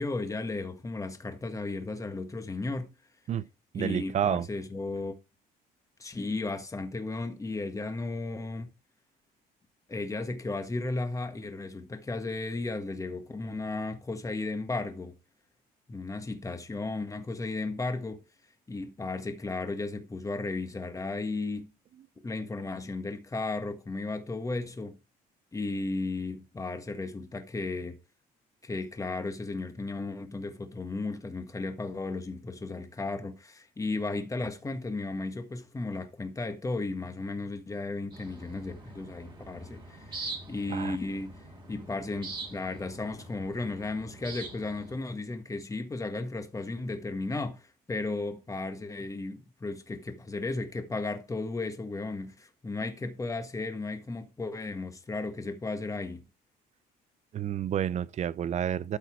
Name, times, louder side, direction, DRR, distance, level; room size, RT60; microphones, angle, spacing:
voice 1, 0.0-2.9 3.7-5.1 6.0-8.7 9.9-15.1 15.9-18.2 18.7-21.7 22.2-25.0 25.5-28.0 28.6-41.4 41.7-56.2, left 3 dB, 20° left, 1.5 m, -35 dB
voice 2, 3.7-4.5 40.7-41.0 57.3-59.0, right 9 dB, 45° right, 0.5 m, -30 dB
sound 1, 38.1-45.0, right 3 dB, 30° right, 3.5 m, -44 dB
12.5 x 4.2 x 4.5 m
cardioid pair, 110°, 17 cm